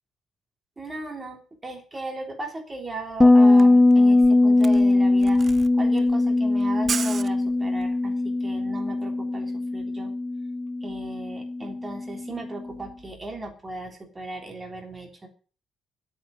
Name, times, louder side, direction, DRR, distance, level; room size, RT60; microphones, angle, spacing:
voice 1, 0.8-10.1 10.8-15.3, right 2 dB, 20° right, 3 dB, 3.5 m, -37 dB
Camera, 3.1-3.2 3.4-8.0, right 6 dB, 40° right, 0.6 m, -35 dB
Bass guitar, 3.2-12.6, left 2 dB, 10° left, 0.7 m, -20 dB
9.4 x 9.0 x 9.3 m, 0.39 s
cardioid pair, 145°, 0 cm